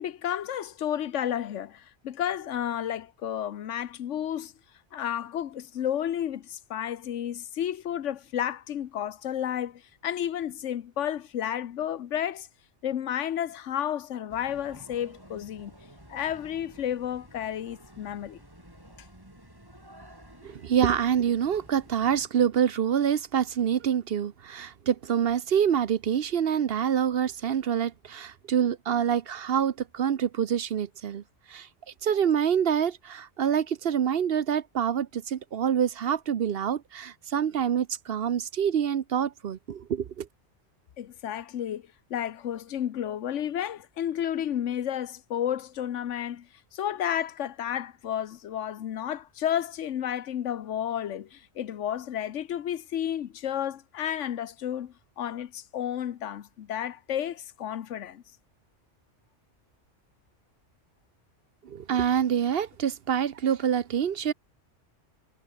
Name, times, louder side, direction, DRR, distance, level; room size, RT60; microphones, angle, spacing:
voice 1, 0.0-4.5 4.9-12.5 12.8-15.7 16.1-18.4 41.0-58.2, left 10 dB, 90° left, 1.2 m, -32 dB
sound 1, 14.3-22.3, right 1 dB, 20° right, 5.9 m, -51 dB
voice 2, 20.4-31.2 31.5-31.7 32.0-40.3 61.6-64.3, right 8 dB, 60° right, 0.9 m, -26 dB
omnidirectional pair, 1.2 m